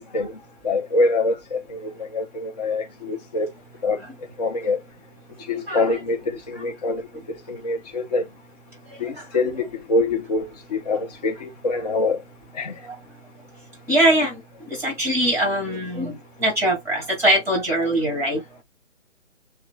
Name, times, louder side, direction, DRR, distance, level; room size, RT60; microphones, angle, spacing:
voice 1, 0.0-3.5 3.8-4.0 4.4-4.8 5.5-8.3 9.0-12.2 12.5-12.8, left 3 dB, 35° left, 0.7 m, -25 dB
voice 2, 5.7-6.0 13.9-14.4 14.7-16.1 16.4-18.4, right 1 dB, 5° right, 2.0 m, -21 dB
7.1 x 2.4 x 2.2 m
figure-of-eight pair, 145°, 37 cm